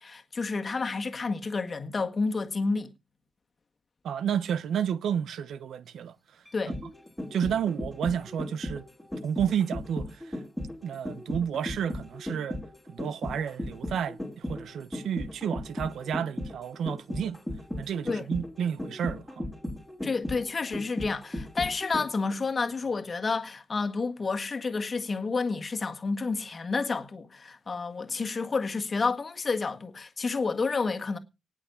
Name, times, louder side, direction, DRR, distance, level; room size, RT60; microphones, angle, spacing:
voice 1, 0.0-2.9 6.5-6.7 18.0-18.3 20.0-31.2, left 4 dB, 30° left, 1.7 m, -30 dB
voice 2, 4.0-6.1 7.3-8.9 9.2-10.4 10.8-12.6 12.9-17.4 17.8-19.4, right 8 dB, 80° right, 0.9 m, -31 dB
sound 1, 6.5-22.3 22.7-22.8, left 1 dB, ahead, 2.4 m, -36 dB
18.5 x 6.3 x 7.1 m
wide cardioid pair, 175°, 0 cm